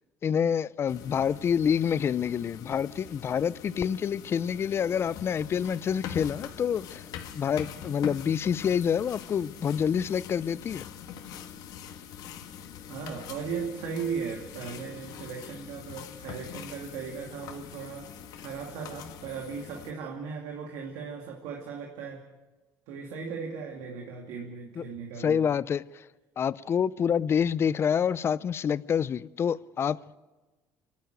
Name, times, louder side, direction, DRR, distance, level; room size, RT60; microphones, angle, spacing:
voice 1, 0.2-7.0 7.3-10.9 24.8-24.9 25.2-26.0 26.4-30.2, left 7 dB, 40° left, 0.6 m, -27 dB
sound 1, 0.9-19.9, left 8 dB, 70° left, 1.8 m, -43 dB
voice 2, 12.9-18.1 18.4-22.2 22.9-25.4, right 5 dB, 80° right, 2.5 m, -37 dB
25.5 x 12.0 x 9.2 m
cardioid pair, 105°, 7 cm